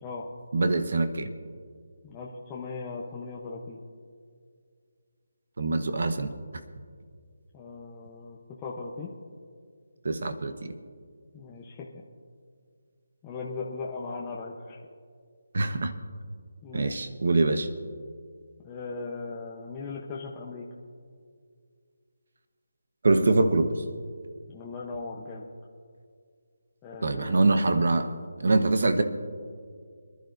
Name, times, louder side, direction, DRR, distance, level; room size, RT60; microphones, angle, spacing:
voice 1, 0.5-1.3 5.6-6.3 10.0-10.5 15.5-15.9 16.7-17.7 23.0-23.7 27.0-29.0, right 2 dB, 60° right, 8 dB, 1.1 m, -24 dB
voice 2, 2.0-3.8 7.5-9.1 11.3-12.0 13.2-14.8 16.6-17.1 18.6-20.7 24.5-25.5 26.8-27.7, left 4 dB, 15° left, -4 dB, 0.8 m, -38 dB
25.0 x 11.5 x 2.6 m, 2.1 s
figure-of-eight pair, 170°, 0 cm